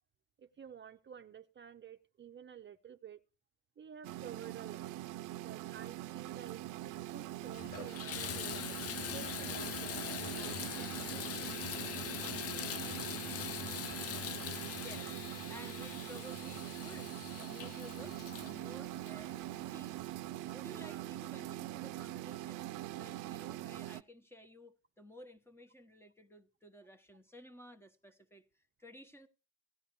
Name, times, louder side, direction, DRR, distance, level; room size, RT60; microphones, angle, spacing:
voice 1, 0.4-3.2 3.8-4.9 5.4-11.6 19.6-19.7 20.6-21.1, right 8 dB, 40° right, 0.6 m, -52 dB
sound 1, 4.0-24.0, right 15 dB, 90° right, 0.5 m, -43 dB
Water tap faucet / Bathtub (filling or washing), 6.9-7.0 7.4-19.8 20.5-20.6 21.1-21.2, left 10 dB, 50° left, 0.5 m, -43 dB
voice 2, 14.7-15.1 15.5-19.9 20.5-29.3, equal, 10° left, 1.1 m, -55 dB
16.5 x 10.5 x 3.1 m
cardioid pair, 90°, 30 cm